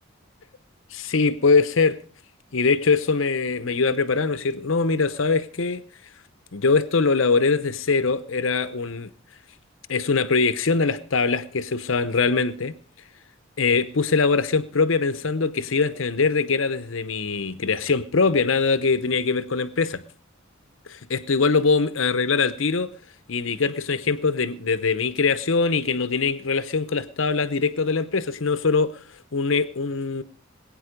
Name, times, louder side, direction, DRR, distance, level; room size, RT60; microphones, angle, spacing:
voice 1, 0.9-2.0 2.5-5.8 6.5-9.1 9.9-12.7 13.6-20.0 20.9-22.9 23.3-29.0 29.3-30.2, left 4 dB, 70° left, 0.8 m, -22 dB
21.0 x 9.1 x 5.1 m
head